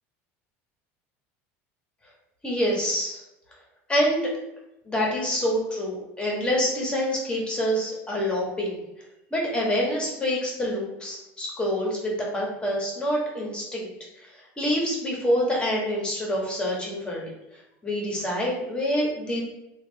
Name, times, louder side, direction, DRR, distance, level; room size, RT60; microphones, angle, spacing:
voice 1, 2.4-3.2 3.9-4.3 4.8-8.8 9.3-13.9 14.2-19.4, equal, 15° left, -2 dB, 1.1 m, -26 dB
3.1 x 2.4 x 3.6 m, 0.88 s
supercardioid pair, 120°, 6 cm